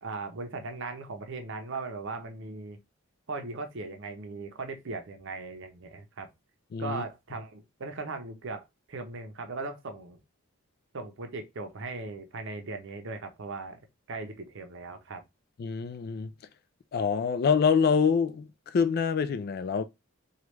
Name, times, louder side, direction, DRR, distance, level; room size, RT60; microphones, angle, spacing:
voice 1, 0.0-2.8 3.3-6.3 6.8-10.2 10.9-13.8 14.1-15.2, right 3 dB, 60° right, 0.6 m, -38 dB
voice 2, 6.7-7.0 15.6-16.3 16.9-19.8, left 6 dB, 45° left, 0.3 m, -26 dB
3.2 x 2.3 x 3.0 m
head